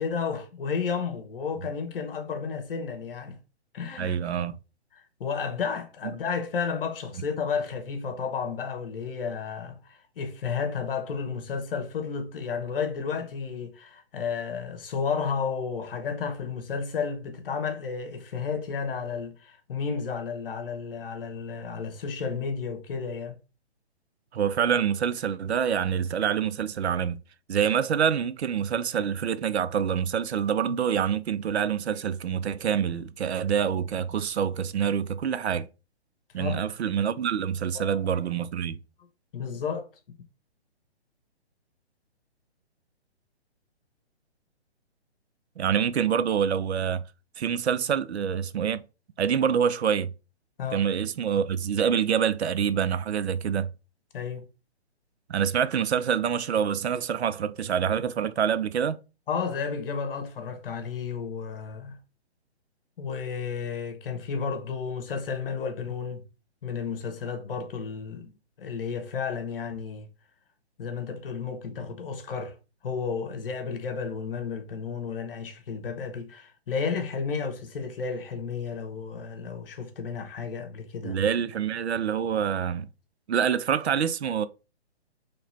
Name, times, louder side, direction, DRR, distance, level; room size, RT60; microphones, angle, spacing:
voice 1, 0.0-3.4 3.7-4.2 4.9-23.4 30.7-30.8 36.4-36.7 37.7-38.0 39.3-39.9 50.6-50.9 54.1-54.5 59.3-62.0 63.0-66.2 66.6-70.1 70.8-72.5 72.8-81.2, left 6 dB, 55° left, 1.1 m, -32 dB
voice 2, 4.0-4.6 6.0-6.2 24.3-27.2 27.5-35.7 36.3-38.8 45.6-47.0 47.4-48.8 49.2-50.1 50.7-53.7 55.3-59.0 81.0-82.9 83.3-84.5, right 8 dB, 75° right, 0.6 m, -26 dB
3.2 x 2.9 x 4.2 m
hypercardioid pair, 140°, 33 cm